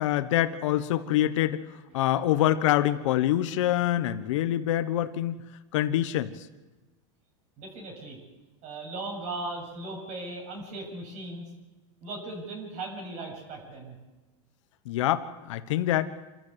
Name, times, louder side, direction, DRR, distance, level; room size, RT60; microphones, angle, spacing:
voice 1, 0.0-1.6 1.9-5.4 5.7-6.3 14.9-16.1, left 13 dB, 80° left, 11 dB, 1.3 m, -25 dB
voice 2, 7.6-8.2 8.6-11.5 12.0-14.0, right 2 dB, 50° right, 1 dB, 7.7 m, -38 dB
27.0 x 13.5 x 8.3 m, 1.1 s
supercardioid pair, 130°, 16 cm